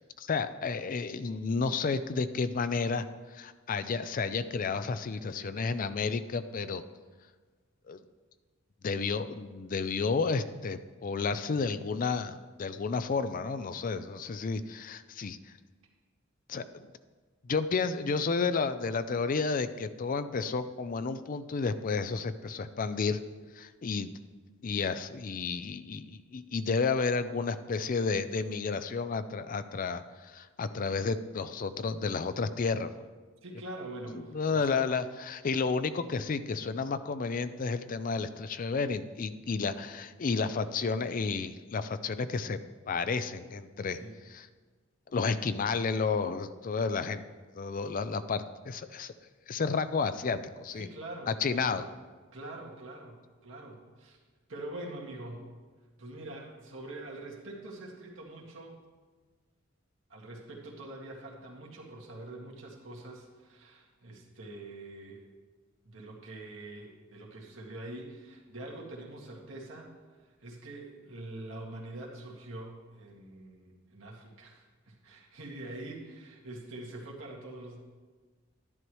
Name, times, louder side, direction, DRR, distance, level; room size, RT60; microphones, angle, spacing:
voice 1, 0.2-6.8 7.9-8.0 8.8-15.4 16.5-16.9 17.4-23.2 23.5-24.1 24.6-33.1 34.3-42.6 42.9-44.0 44.3-44.5 45.1-47.2 47.5-49.1 49.5-50.9 51.3-51.8, left 4 dB, 45° left, 12 dB, 0.4 m, -31 dB
voice 2, 33.4-34.9 43.9-44.2 50.7-51.9 52.3-54.2 54.5-55.5 56.0-58.8 60.1-65.2 65.8-69.9 70.2-77.9, right 2 dB, 80° right, -1 dB, 1.9 m, -44 dB
11.5 x 11.0 x 3.1 m, 1.4 s
head